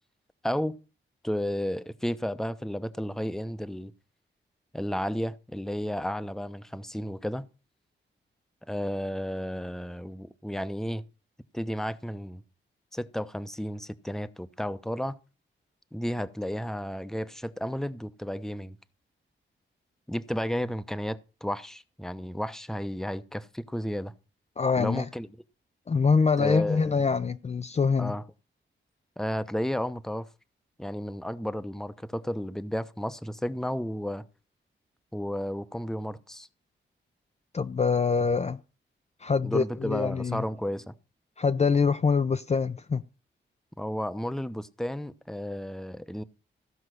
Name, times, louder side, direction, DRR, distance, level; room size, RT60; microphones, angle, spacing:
voice 1, 0.4-0.7 1.2-3.9 4.7-7.4 8.6-11.0 11.5-12.4 12.9-15.1 15.9-18.8 20.1-24.1 24.8-25.3 26.4-26.9 28.0-28.2 29.2-30.3 30.8-34.2 35.1-36.5 39.4-40.9 43.8-46.2, equal, ahead, 0.8 m, -32 dB
voice 2, 24.6-25.1 25.9-28.1 37.5-38.6 39.2-40.4 41.4-43.0, left 5 dB, 35° left, 0.6 m, -25 dB
14.5 x 5.5 x 6.4 m
cardioid pair, 80°, 20 cm